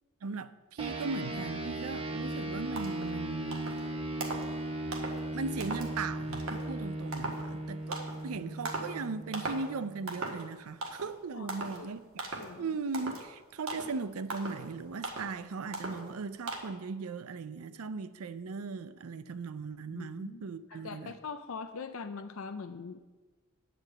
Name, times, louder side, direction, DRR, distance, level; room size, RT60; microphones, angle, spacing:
voice 1, 0.2-3.8 4.1-4.2 5.3-12.0 12.3-21.2, right 4 dB, 85° right, 0.5 m, -38 dB
sound 1, 0.8-10.5, right 1 dB, 25° right, 0.9 m, -37 dB
sound 2, 2.3-2.4 2.8-3.1 3.5-3.9 4.2-4.5 4.9-5.2 5.6-5.9 6.3-6.7 7.1-7.4 7.9-8.2 8.6-9.0 9.3-9.7 10.1-10.5 10.8-11.1 11.5-11.8 12.2-12.5 12.9-13.3 13.7-14.0 14.3-14.6 15.0-15.4 15.7-16.1 16.5-16.6, right 2 dB, 65° right, 1.5 m, -38 dB
voice 2, 19.9-23.0, left 5 dB, 70° left, 0.5 m, -42 dB
9.4 x 5.1 x 7.5 m
head